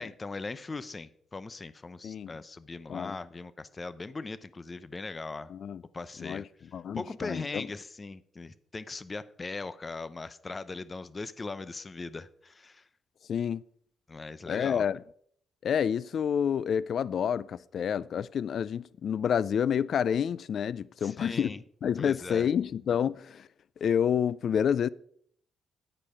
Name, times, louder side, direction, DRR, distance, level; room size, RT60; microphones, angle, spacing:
voice 1, 0.0-5.5 5.9-6.5 6.9-12.9 14.1-14.8 21.0-21.6 22.0-22.5, left 3 dB, 25° left, 0.7 m, -39 dB
voice 2, 5.5-5.8 6.2-6.4 6.7-7.7 13.3-13.6 14.5-15.0 15.6-21.5 21.8-23.5 23.8-24.9, left 8 dB, 60° left, 0.4 m, -29 dB
9.9 x 9.0 x 5.0 m
cardioid pair, 90°, 0 cm